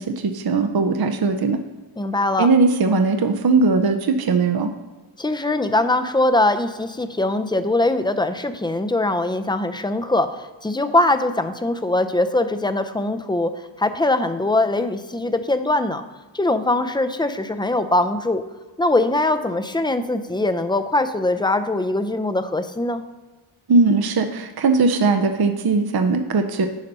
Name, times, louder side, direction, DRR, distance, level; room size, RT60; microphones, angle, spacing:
voice 1, 0.0-1.6 2.4-4.7 23.7-26.7, right 3 dB, 50° right, 6 dB, 0.6 m, -19 dB
voice 2, 2.0-2.5 5.2-16.0 16.3-18.4 18.8-23.0, left 2 dB, 10° left, 9 dB, 0.4 m, -22 dB
9.9 x 4.0 x 5.4 m, 1.2 s
wide cardioid pair, 80°, 50 cm